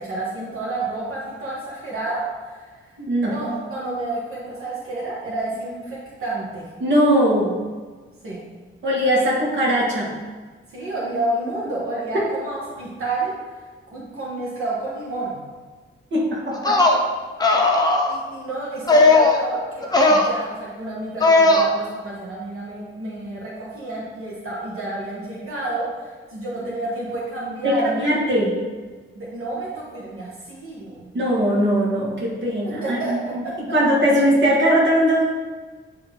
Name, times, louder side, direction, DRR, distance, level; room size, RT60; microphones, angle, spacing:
voice 1, 0.0-2.9 3.2-6.7 8.2-8.4 10.7-15.4 18.1-28.1 29.1-31.1 32.8-33.5, right 2 dB, 85° right, -6 dB, 1.4 m, -30 dB
voice 2, 3.0-3.3 6.8-7.6 8.8-10.1 16.1-16.8 27.6-28.5 31.1-33.4 33.7-35.2, equal, 60° right, -4 dB, 1.7 m, -20 dB
sound 1, 16.5-17.0 17.4-18.1 18.9-19.4 19.8-20.3 21.2-21.6, left 2 dB, 20° left, 0.6 m, -16 dB
9.2 x 3.3 x 3.5 m, 1.4 s
wide cardioid pair, 150°, 21 cm